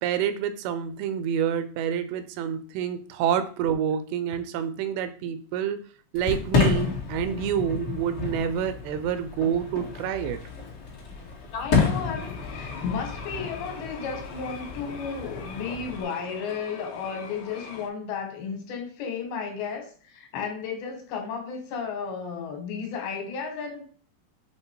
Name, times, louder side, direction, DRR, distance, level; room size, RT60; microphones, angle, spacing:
voice 1, 0.0-5.8 6.1-10.4, right 8 dB, 85° right, 10 dB, 2.6 m, -28 dB
Fireworks, 6.1-16.0, left 5 dB, 45° left, 2.4 m, -30 dB
voice 2, 11.5-23.8, left 6 dB, 85° left, 3 dB, 3.3 m, -33 dB
sound 1, 12.1-17.9, left 5 dB, 70° left, 2.4 m, -43 dB
7.1 x 2.9 x 4.6 m, 0.42 s
omnidirectional pair, 4.3 m